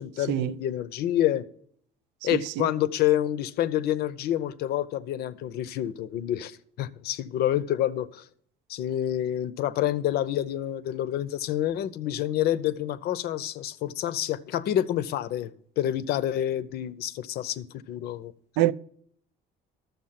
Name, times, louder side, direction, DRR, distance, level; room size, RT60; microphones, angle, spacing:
voice 1, 0.0-1.4 2.2-8.2 8.7-18.3, left 12 dB, 65° left, 0.7 m, -28 dB
voice 2, 2.3-2.7 18.6-18.7, right 15 dB, 85° right, 0.5 m, -25 dB
12.5 x 7.1 x 5.8 m
cardioid pair, 150°, 18 cm